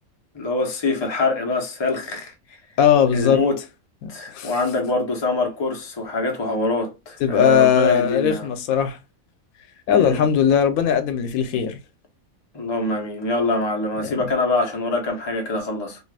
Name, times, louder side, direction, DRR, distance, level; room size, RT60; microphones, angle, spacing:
voice 1, 0.3-2.3 3.1-3.6 4.1-8.5 9.9-10.2 12.5-16.0, left 2 dB, 30° left, 0.5 m, -24 dB
voice 2, 2.8-3.4 4.0-4.5 7.2-9.0 9.9-11.8 14.0-14.3, left 8 dB, 85° left, 1.0 m, -19 dB
2.5 x 2.4 x 3.3 m
omnidirectional pair, 1.4 m